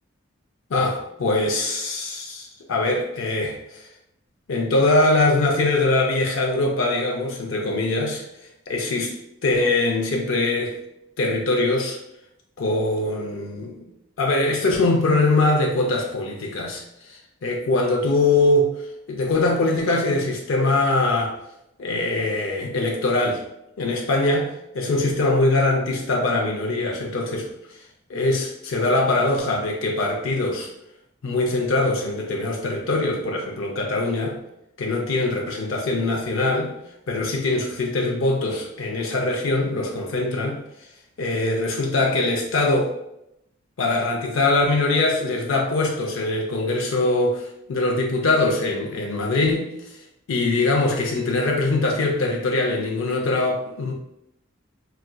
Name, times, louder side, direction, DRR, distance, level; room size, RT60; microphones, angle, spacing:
voice 1, 0.7-3.9 4.5-8.2 8.7-9.1 9.4-10.8 11.2-12.0 12.6-13.9 14.2-18.7 19.1-21.3 21.8-23.4 23.8-27.5 28.1-30.7 31.2-34.4 34.8-36.7 37.1-40.6 41.2-42.9 43.8-50.0 50.3-53.9, left 2 dB, 80° left, 0 dB, 0.5 m, -22 dB
4.1 x 2.4 x 2.2 m, 0.82 s
head